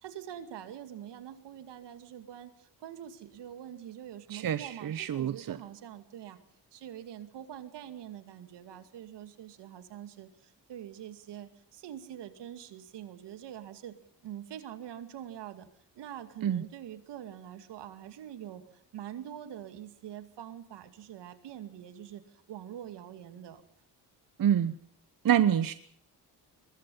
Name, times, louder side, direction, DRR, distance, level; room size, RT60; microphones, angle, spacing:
voice 1, 0.0-6.4 6.7-14.0 14.2-15.7 16.0-23.6, right 10 dB, 80° right, 10 dB, 2.4 m, -45 dB
voice 2, 4.3-5.6 16.4-16.6 24.4-24.7 25.2-25.7, right 10 dB, 55° right, 13 dB, 1.1 m, -27 dB
22.5 x 21.0 x 5.5 m, 0.63 s
supercardioid pair, 65°, 41 cm